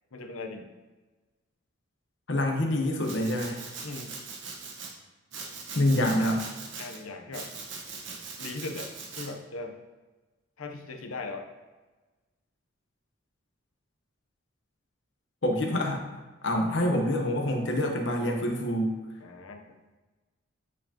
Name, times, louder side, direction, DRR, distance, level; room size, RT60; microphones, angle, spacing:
voice 1, 0.1-0.7 3.8-4.2 6.8-7.5 8.4-9.8 10.6-11.5 19.2-19.8, left 3 dB, 85° left, 4 dB, 0.8 m, -39 dB
voice 2, 2.3-3.6 5.7-6.4 15.4-16.0 16.4-19.0, left 1 dB, 60° left, 1 dB, 1.0 m, -26 dB
Domestic sounds home sounds, 3.0-4.9 5.3-7.0 7.3-9.3, right 4 dB, 60° right, 1.1 m, -41 dB
8.3 x 4.5 x 2.9 m, 1.2 s
head